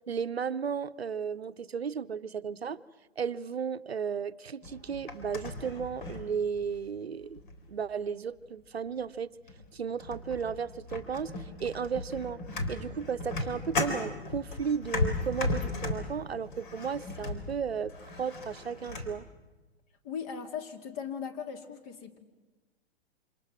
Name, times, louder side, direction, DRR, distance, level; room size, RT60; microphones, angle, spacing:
voice 1, 0.1-2.8 3.2-7.4 7.7-9.3 9.7-12.4 12.7-19.3, right 6 dB, 75° right, 15 dB, 0.7 m, -34 dB
sound 1, 4.6-6.8 7.4-7.8 8.9-9.0 9.5-9.7 10.0-19.2, left 2 dB, 50° left, 3.8 m, -36 dB
voice 2, 20.0-22.2, left 7 dB, 35° left, 6 dB, 2.5 m, -38 dB
28.0 x 26.5 x 6.1 m, 1.2 s
figure-of-eight pair, 110°, 31 cm